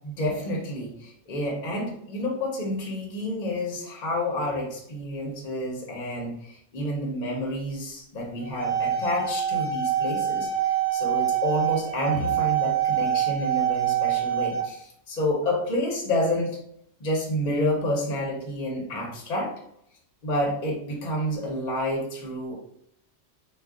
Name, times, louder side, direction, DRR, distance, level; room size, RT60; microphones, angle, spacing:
voice 1, 0.0-16.6 17.0-19.5 20.2-22.6, left 1 dB, 50° left, -1 dB, 0.6 m, -29 dB
sound 1, 8.4-14.6, right 9 dB, 75° right, 0.3 m, -25 dB
2.3 x 2.2 x 3.5 m, 0.72 s
omnidirectional pair, 1.2 m